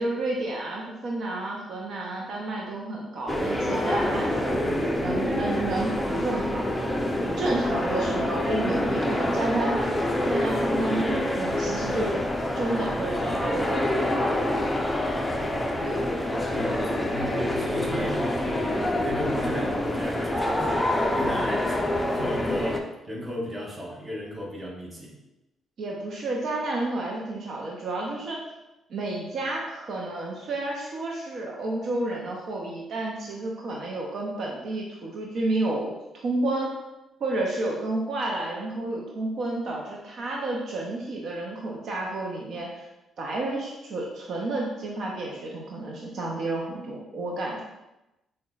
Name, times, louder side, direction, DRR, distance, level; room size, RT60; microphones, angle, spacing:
voice 1, 0.0-6.6 7.2-10.0 10.3-12.2 12.5-14.0 15.8-16.1 25.8-28.4 28.9-36.8 37.2-42.9 43.2-47.6, right 2 dB, 60° right, -2 dB, 0.5 m, -31 dB
sound 1, 3.3-22.8, left 1 dB, 10° left, 0.4 m, -26 dB
voice 2, 16.5-25.2, equal, 20° right, -2 dB, 0.9 m, -35 dB
5.3 x 2.1 x 2.3 m, 0.97 s
cardioid pair, 90°, 0 cm